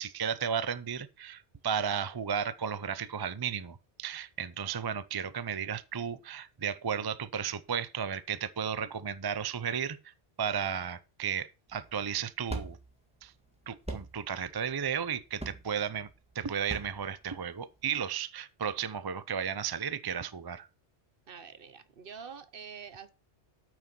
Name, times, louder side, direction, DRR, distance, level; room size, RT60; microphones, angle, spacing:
voice 1, 0.0-10.1 10.4-12.8 13.2-13.3 13.7-16.1 16.3-20.7, right 7 dB, 30° right, 0.4 m, -34 dB
sound 1, 11.7-17.9, right 2 dB, 5° right, 1.6 m, -43 dB
voice 2, 21.3-23.1, right 6 dB, 55° right, 1.1 m, -46 dB
9.1 x 6.1 x 6.0 m
omnidirectional pair, 1.1 m